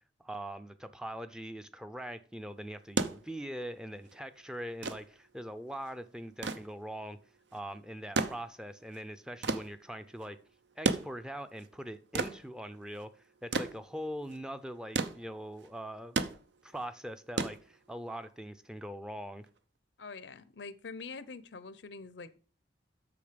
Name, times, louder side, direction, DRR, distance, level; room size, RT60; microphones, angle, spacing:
voice 1, 0.2-7.2 7.5-10.4 10.8-13.1 13.4-16.2 16.6-19.5, equal, 5° right, 0.5 m, -42 dB
sound 1, 2.7-18.2 19.5-19.6, right 4 dB, 75° right, 0.7 m, -36 dB
voice 2, 20.0-22.4, left 4 dB, 75° left, 0.7 m, -45 dB
8.6 x 6.4 x 5.1 m
head